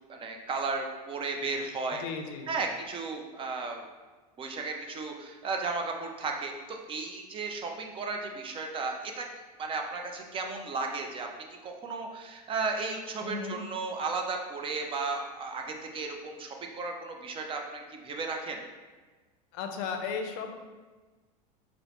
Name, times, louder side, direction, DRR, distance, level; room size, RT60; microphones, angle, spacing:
voice 1, 0.1-2.1 2.5-3.8 4.4-9.3 9.6-11.3 11.6-18.6, right 4 dB, 25° right, 3 dB, 0.5 m, -34 dB
voice 2, 2.0-2.5 13.2-13.6 19.5-20.5, left 5 dB, 60° left, 5 dB, 0.5 m, -35 dB
4.5 x 2.0 x 2.9 m, 1.3 s
supercardioid pair, 105°, 20 cm